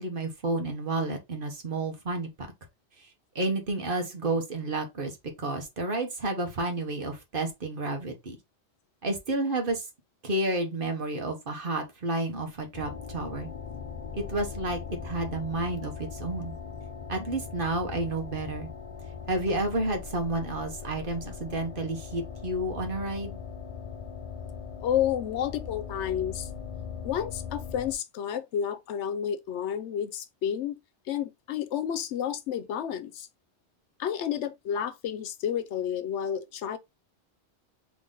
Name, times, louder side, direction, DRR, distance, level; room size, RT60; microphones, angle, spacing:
voice 1, 0.0-2.3 3.3-8.4 9.0-9.8 10.2-13.5 14.1-16.6 17.1-18.7 19.3-23.4, right 2 dB, 50° right, 1.3 m, -31 dB
sound 1, 12.7-27.9, left 6 dB, 45° left, 0.5 m, -40 dB
voice 2, 24.8-26.5 27.0-30.7 31.1-33.3 34.0-36.8, left 9 dB, 80° left, 0.9 m, -30 dB
4.0 x 3.1 x 3.7 m
omnidirectional pair, 1.2 m